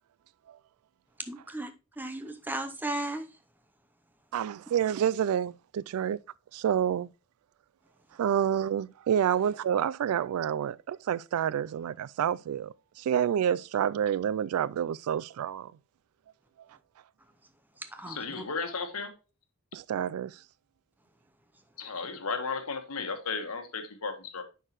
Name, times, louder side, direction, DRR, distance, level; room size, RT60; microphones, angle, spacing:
voice 1, 1.2-3.3 17.8-18.4, right 2 dB, 10° right, 0.6 m, -36 dB
voice 2, 4.3-6.2 6.5-7.1 8.2-15.7 19.7-20.4, right 9 dB, 85° right, 0.3 m, -28 dB
voice 3, 18.1-19.1 21.8-24.4, left 4 dB, 85° left, 1.3 m, -34 dB
9.8 x 4.7 x 3.0 m
head